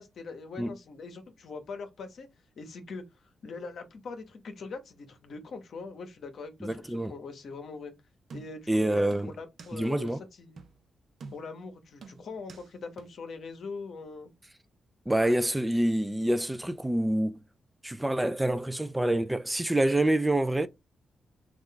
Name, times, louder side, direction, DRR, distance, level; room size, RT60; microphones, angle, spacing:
voice 1, 0.0-2.3 2.6-7.9 8.3-10.1 10.4-10.6 11.3-14.3, left 4 dB, 70° left, 0.8 m, -42 dB
voice 2, 6.6-7.1 8.7-9.3 9.7-10.2 15.1-17.4 17.8-20.7, right 1 dB, 10° right, 0.4 m, -27 dB
sound 1, 8.3-8.7 9.1-9.8 10.1-10.2 10.6-10.8 11.2-11.6 12.0-12.7 13.0-13.1, right 4 dB, 65° right, 0.6 m, -47 dB
3.1 x 2.4 x 3.7 m
supercardioid pair, 55°, 0 cm